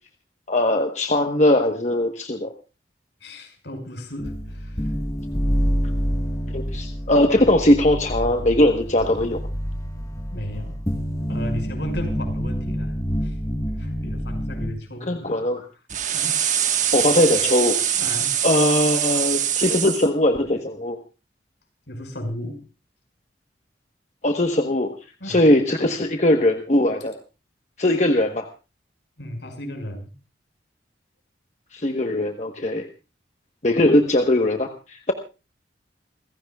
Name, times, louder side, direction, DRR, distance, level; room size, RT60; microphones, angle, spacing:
voice 1, 0.5-2.5 6.5-9.4 15.1-15.6 16.9-18.0 18.4-21.0 24.2-24.9 25.3-27.2 27.8-28.5 31.7-32.9 33.6-35.1, left 1 dB, 40° left, 4 dB, 1.2 m, -20 dB
voice 2, 3.2-5.0 10.3-10.8 11.3-12.9 13.2-13.4 13.8-15.4 16.1-16.4 17.9-18.3 21.9-22.6 25.2-25.5 29.2-30.1, left 1 dB, 75° left, 5 dB, 5.6 m, -34 dB
sound 1, 4.2-14.7, equal, 20° left, 1.5 m, -27 dB
sound 2, 15.9-20.1, right 10 dB, 45° right, 1.5 m, -23 dB
28.0 x 16.0 x 2.4 m, 0.32 s
head